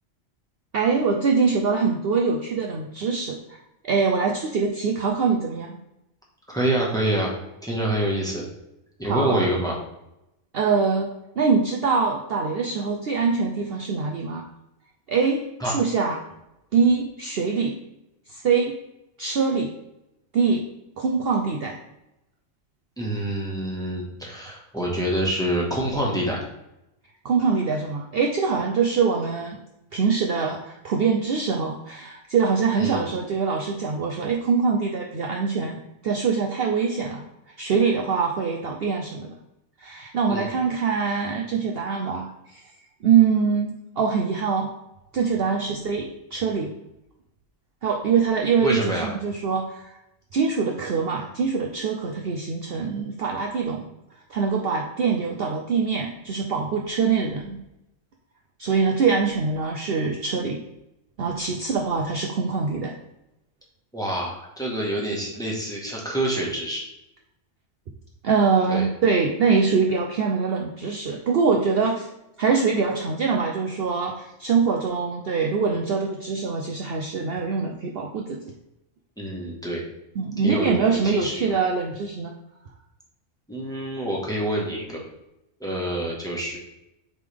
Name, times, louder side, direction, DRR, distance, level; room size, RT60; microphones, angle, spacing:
voice 1, 0.7-3.4 3.8-5.8 9.0-9.4 10.5-14.5 15.1-16.2 16.7-17.7 18.3-18.7 19.2-19.7 20.3-20.6 21.0-21.8 27.2-29.6 29.9-37.2 37.6-39.3 39.8-42.6 43.0-44.7 45.1-46.7 47.8-49.9 50.3-53.8 54.3-57.6 58.6-60.6 61.2-62.9 68.2-72.1 72.4-78.4 80.2-82.3, right 5 dB, 55° right, 1 dB, 0.8 m, -23 dB
voice 2, 6.5-7.3 7.6-8.4 9.0-9.7 15.6-15.7 23.0-26.4 32.8-33.0 40.3-40.5 45.7-45.8 48.6-49.1 63.9-66.8 68.7-68.9 79.2-79.8 80.4-81.5 83.5-85.0 85.6-86.6, right 1 dB, 5° left, -3 dB, 1.4 m, -26 dB
8.3 x 3.6 x 3.5 m, 0.88 s
omnidirectional pair, 1.4 m